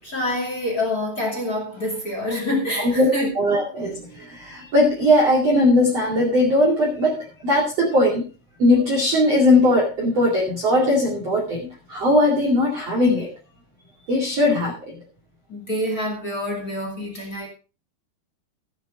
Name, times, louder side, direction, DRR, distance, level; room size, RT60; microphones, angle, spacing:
voice 1, 0.0-3.3 15.5-17.5, left 1 dB, 35° left, 1.4 m, -26 dB
voice 2, 2.8-3.1 3.3-8.3 8.6-13.3 14.1-15.0, left 1 dB, 40° right, 2.5 m, -19 dB
15.5 x 8.9 x 3.7 m
omnidirectional pair, 5.9 m